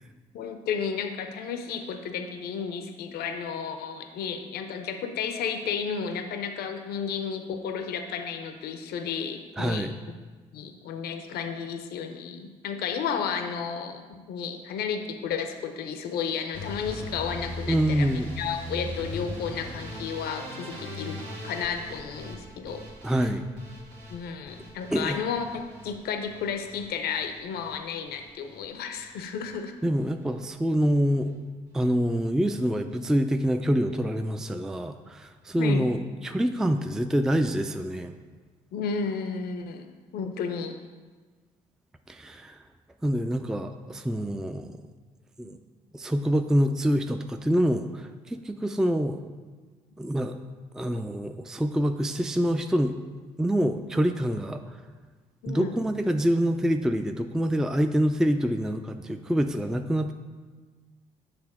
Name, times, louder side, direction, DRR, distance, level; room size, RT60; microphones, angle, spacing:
voice 1, 0.3-9.9 10.5-22.8 24.1-29.7 35.6-35.9 38.7-39.9 40.1-40.8 55.4-55.8, left 6 dB, 60° left, 7 dB, 0.6 m, -32 dB
voice 2, 9.6-9.9 17.7-18.4 23.0-23.4 24.9-25.2 29.8-31.3 31.7-38.1 42.1-42.6 43.0-44.8 45.4-45.6 45.9-49.2 50.0-50.4 50.7-52.9 53.4-54.8 55.5-60.1, equal, 5° right, 7 dB, 0.4 m, -26 dB
sound 1, 16.5-28.7 29.0-29.5 29.9-30.4 30.8-31.0 31.3-31.4 31.7-31.8, left 1 dB, 80° right, 1.4 m, -40 dB
6.7 x 3.5 x 5.9 m, 1.4 s
hypercardioid pair, 50°, 18 cm